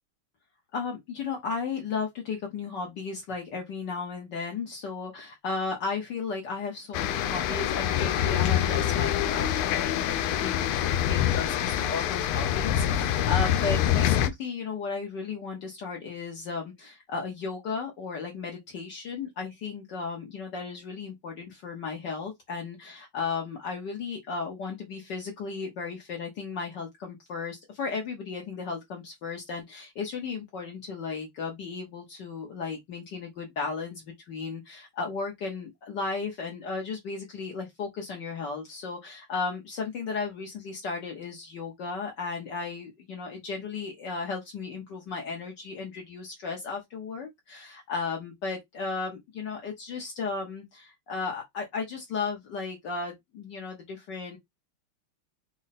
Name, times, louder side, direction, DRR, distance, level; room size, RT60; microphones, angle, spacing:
voice 1, 0.7-54.4, left 4 dB, 60° left, 1.5 m, -35 dB
sound 1, 6.9-14.3, left 10 dB, 90° left, 1.5 m, -25 dB
5.1 x 2.2 x 4.1 m
omnidirectional pair, 2.3 m